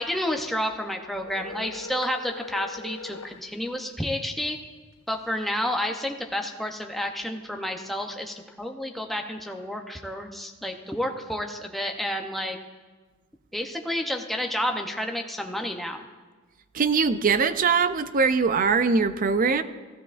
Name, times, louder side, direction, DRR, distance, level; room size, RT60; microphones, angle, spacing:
voice 1, 0.0-4.6 5.1-12.6 13.5-16.0, left 1 dB, ahead, 3 dB, 0.7 m, -30 dB
sound 1, 1.2-3.4, left 5 dB, 70° left, 0.8 m, -40 dB
voice 2, 16.7-19.6, right 5 dB, 40° right, 12 dB, 0.4 m, -22 dB
15.5 x 13.5 x 2.5 m, 1.4 s
head